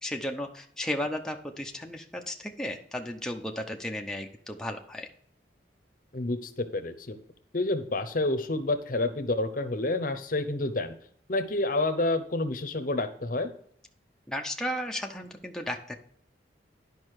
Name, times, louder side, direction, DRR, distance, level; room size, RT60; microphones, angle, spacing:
voice 1, 0.0-5.1 14.3-16.0, left 1 dB, 5° left, 2 dB, 0.6 m, -34 dB
voice 2, 6.1-7.2 7.5-11.0 11.3-13.5, left 2 dB, 50° left, 9 dB, 0.8 m, -29 dB
10.5 x 5.4 x 4.7 m, 0.62 s
head